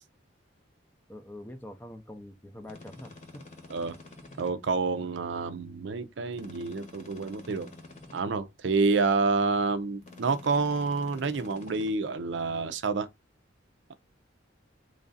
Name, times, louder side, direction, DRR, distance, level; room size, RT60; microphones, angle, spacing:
voice 1, 1.1-3.1, left 1 dB, 10° left, 0.5 m, -44 dB
sound 1, 2.6-4.5 6.3-8.2 10.0-11.9, left 3 dB, 40° left, 1.0 m, -49 dB
voice 2, 4.4-7.7 8.1-13.1, right 4 dB, 70° right, 0.5 m, -28 dB
3.2 x 2.5 x 3.8 m
head